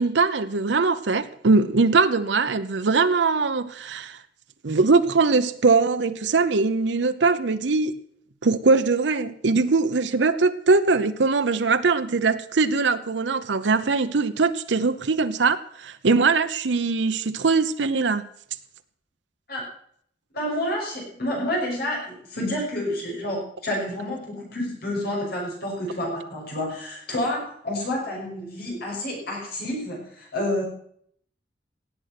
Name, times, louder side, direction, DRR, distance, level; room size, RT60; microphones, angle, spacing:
voice 1, 0.0-4.2 4.6-7.9 8.4-18.2, right 4 dB, 80° right, 10 dB, 0.7 m, -21 dB
voice 2, 20.3-30.6, left 1 dB, 60° left, -2 dB, 6.0 m, -29 dB
17.5 x 8.0 x 5.9 m, 0.64 s
head